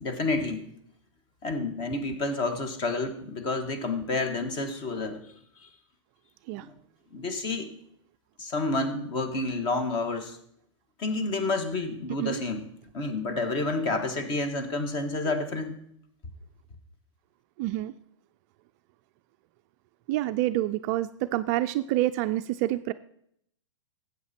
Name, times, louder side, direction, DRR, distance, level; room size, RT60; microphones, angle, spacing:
voice 1, 0.0-0.6 1.4-5.2 5.6-5.7 6.6-6.7 7.1-7.7 8.4-10.4 11.0-12.6 12.9-15.8, left 2 dB, 30° left, 8 dB, 1.5 m, -29 dB
voice 2, 17.6-17.9 20.1-22.9, right 15 dB, 35° right, 10 dB, 0.4 m, -27 dB
13.5 x 8.2 x 4.3 m, 0.70 s
hypercardioid pair, 135°, 16 cm